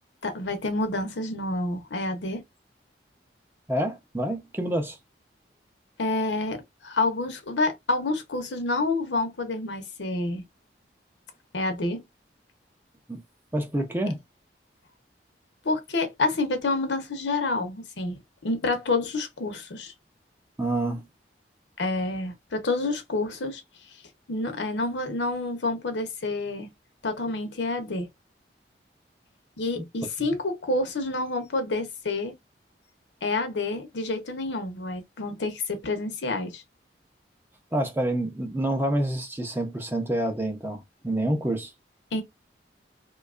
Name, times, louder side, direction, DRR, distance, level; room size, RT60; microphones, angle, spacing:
voice 1, 0.2-2.4 6.0-10.4 11.5-12.0 15.6-19.9 21.8-23.6 24.3-26.7 27.0-28.1 29.6-32.3 33.2-36.6 42.1-42.2, left 2 dB, 85° left, 0.7 m, -28 dB
voice 2, 3.7-5.0 13.1-13.2 13.5-14.2 20.6-21.1 37.7-41.7, right 1 dB, 10° right, 0.5 m, -27 dB
2.8 x 2.3 x 2.3 m
head